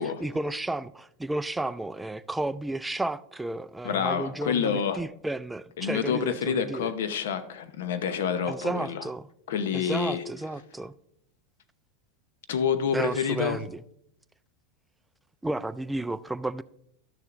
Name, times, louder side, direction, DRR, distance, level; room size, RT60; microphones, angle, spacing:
voice 1, 0.2-6.9 8.5-9.3 9.7-10.9 12.9-13.8 15.4-16.6, right 2 dB, 5° right, 0.3 m, -32 dB
voice 2, 3.8-5.0 5.8-9.0 9.5-10.2 12.5-13.6, left 7 dB, 80° left, 0.8 m, -28 dB
12.0 x 6.8 x 2.5 m
supercardioid pair, 130°, 0 cm